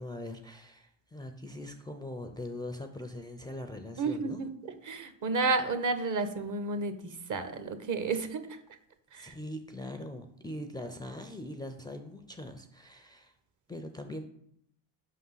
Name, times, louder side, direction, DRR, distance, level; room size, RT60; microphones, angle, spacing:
voice 1, 0.0-4.4 9.1-13.3 13.7-14.3, left 1 dB, 10° left, 5 dB, 0.5 m, -41 dB
voice 2, 4.0-4.5 4.8-8.6 9.1-9.3, right 3 dB, 40° right, 10 dB, 0.9 m, -31 dB
5.3 x 3.7 x 5.6 m, 0.71 s
supercardioid pair, 70°, 46 cm